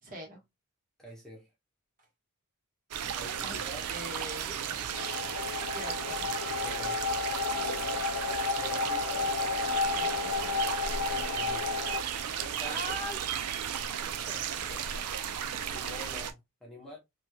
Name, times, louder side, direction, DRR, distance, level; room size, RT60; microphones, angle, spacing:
voice 1, 0.0-0.4 3.4-3.5 3.9-4.9 5.2-6.3 9.8-10.8 12.6-13.2 13.5-14.9, equal, 40° right, 1.2 m, -43 dB
voice 2, 1.0-1.5 3.1-3.9 6.6-7.0 8.5-9.3 11.1-11.7 12.4-12.8 15.7-17.0, equal, ahead, 0.8 m, -46 dB
sound 1, 2.9-16.3, right 8 dB, 85° right, 0.4 m, -35 dB
sound 2, 4.9-12.0, left 5 dB, 65° left, 0.4 m, -32 dB
3.1 x 3.1 x 2.2 m
head